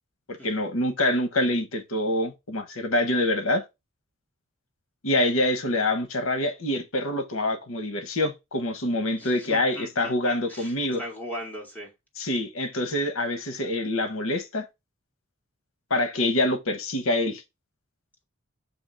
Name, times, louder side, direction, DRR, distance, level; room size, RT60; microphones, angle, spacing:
voice 1, 0.3-3.6 5.0-11.0 12.2-14.7 15.9-17.4, left 1 dB, 75° left, 1.1 m, -26 dB
voice 2, 9.2-11.9, equal, 10° left, 2.2 m, -39 dB
7.0 x 2.9 x 5.6 m
head